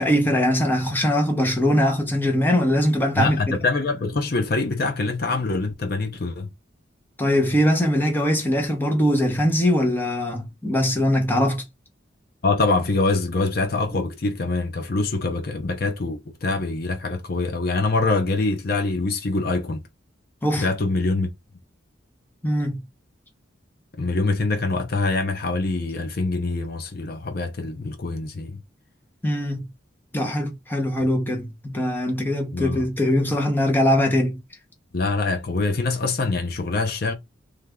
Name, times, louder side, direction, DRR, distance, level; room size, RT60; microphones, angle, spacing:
voice 1, 0.0-3.6 7.2-11.6 13.9-14.0 20.4-20.7 22.4-22.8 29.2-29.7 30.1-34.4, equal, 10° left, 1.0 m, -21 dB
voice 2, 3.1-6.5 12.4-19.8 20.6-21.3 24.0-28.6 32.5-32.8 34.9-37.1, left 3 dB, 50° left, 0.7 m, -24 dB
3.4 x 3.3 x 3.6 m
head